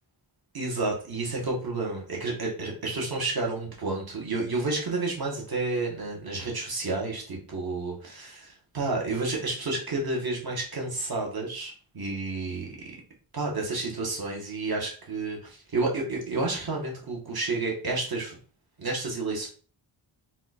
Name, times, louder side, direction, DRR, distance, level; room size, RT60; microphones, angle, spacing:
voice 1, 0.5-12.7 13.3-18.4 18.8-19.5, right 3 dB, 50° right, -1 dB, 1.6 m, -30 dB
4.0 x 2.5 x 4.2 m, 0.39 s
wide cardioid pair, 70°, 47 cm